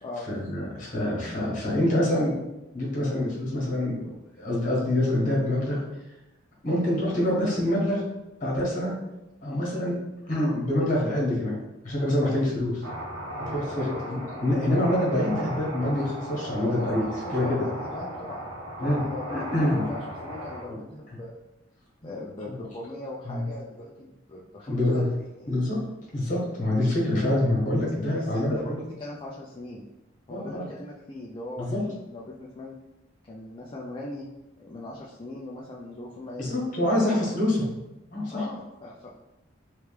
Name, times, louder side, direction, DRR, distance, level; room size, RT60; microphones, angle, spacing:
voice 1, 0.3-2.4 2.7-5.8 6.6-8.0 8.4-8.9 9.4-9.9 10.2-11.6 11.8-12.8 13.5-17.0 17.3-17.6 18.8-19.0 19.3-19.8 20.7-20.8 22.0-22.1 23.2-23.4 24.7-25.1 25.5-25.8 26.1-28.8 30.3-30.6 31.6-31.8 36.4-37.6 38.1-38.4, left 1 dB, 40° left, -5 dB, 1.4 m, -26 dB
sound 1, 12.8-20.6, equal, 80° right, 0.7 m, -36 dB
voice 2, 13.8-14.2 16.4-18.4 18.8-21.3 22.0-25.1 25.4-25.5 28.1-29.9 30.3-32.8 33.3-34.3 34.6-36.7 37.4-37.5 38.3-39.1, left 2 dB, 25° left, -4 dB, 0.4 m, -40 dB
3.3 x 3.1 x 3.3 m, 1.0 s
head